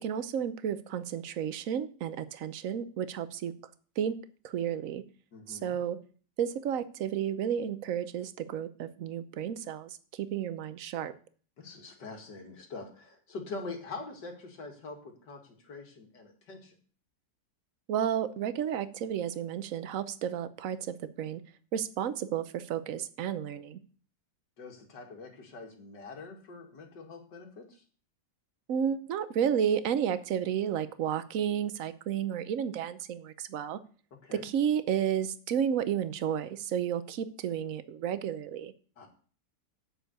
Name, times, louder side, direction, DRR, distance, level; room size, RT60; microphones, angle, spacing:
voice 1, 0.0-3.5 4.0-4.2 4.4-5.0 5.5-6.0 6.4-11.1 17.9-21.4 21.7-23.8 28.7-33.8 34.3-38.7, right 9 dB, 60° right, 13 dB, 1.1 m, -32 dB
voice 2, 5.3-5.8 11.6-16.8 24.6-27.8 34.2-34.5 39.0-39.1, left 3 dB, 75° left, 3 dB, 2.6 m, -44 dB
8.1 x 6.8 x 7.9 m, 0.42 s
omnidirectional pair, 1.9 m